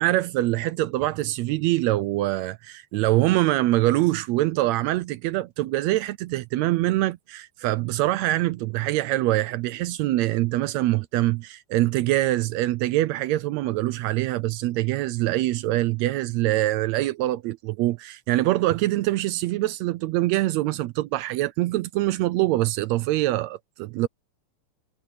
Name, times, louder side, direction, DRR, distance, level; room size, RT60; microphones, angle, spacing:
voice 1, 0.0-24.1, right 16 dB, 80° right, 1.7 m, -24 dB
omnidirectional pair, 3.4 m